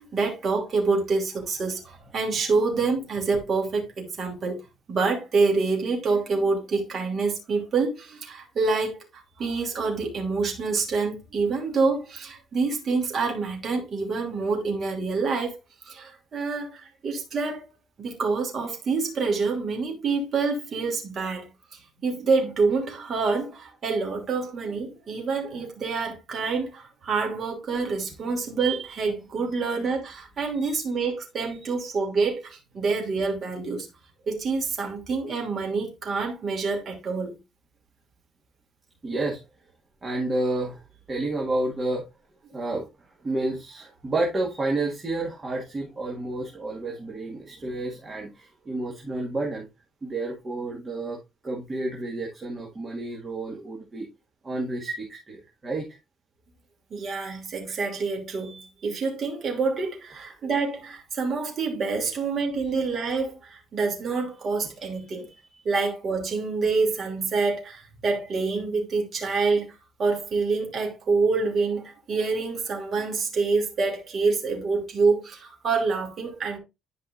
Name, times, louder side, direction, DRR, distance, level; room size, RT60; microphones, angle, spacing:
voice 1, 0.0-4.6 4.9-15.5 15.8-17.6 18.0-33.9 34.3-37.4 56.9-65.3 65.6-69.7 70.0-76.6, right 4 dB, 40° right, 2.8 m, -27 dB
voice 2, 39.0-39.4 40.0-42.1 42.5-49.7 50.0-51.2 51.4-54.1 54.4-56.0 65.0-65.2 65.5-65.6, right 2 dB, 20° right, 1.9 m, -30 dB
11.0 x 5.4 x 2.6 m
cardioid pair, 145°, 0 cm